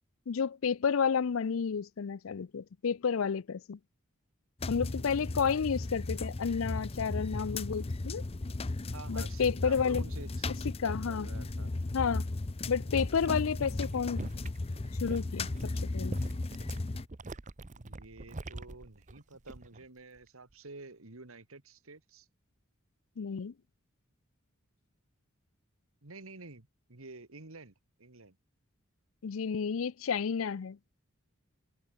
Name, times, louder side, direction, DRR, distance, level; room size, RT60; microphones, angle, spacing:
voice 1, 0.3-3.8 4.7-8.2 9.1-10.0 10.8-11.3 11.9-12.2 12.7-14.3 15.0-16.2 23.2-23.5 29.2-30.8, left 6 dB, 75° left, 0.5 m, -31 dB
sound 1, 4.6-17.1, left 2 dB, 30° left, 0.5 m, -36 dB
voice 2, 8.9-11.7 17.8-22.3 26.0-28.4, right 3 dB, 80° right, 2.1 m, -49 dB
sound 2, 12.9-19.9 20.2-20.5, right 2 dB, 35° right, 0.9 m, -45 dB
head